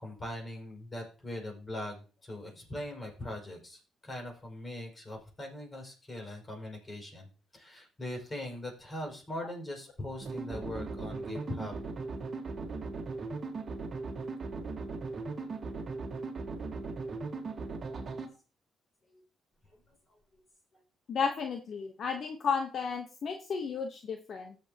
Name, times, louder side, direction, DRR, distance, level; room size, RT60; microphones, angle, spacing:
voice 1, 0.0-7.3 7.5-11.8 19.1-19.2 19.9-20.4 20.7-20.8, left 1 dB, 30° left, 1 dB, 5.7 m, -41 dB
sound 1, 10.2-18.3, right 3 dB, 45° right, 1.7 m, -38 dB
voice 2, 21.1-24.6, left 5 dB, 55° left, 5 dB, 1.1 m, -33 dB
14.5 x 7.1 x 2.9 m, 0.35 s
cardioid pair, 90°, 0 cm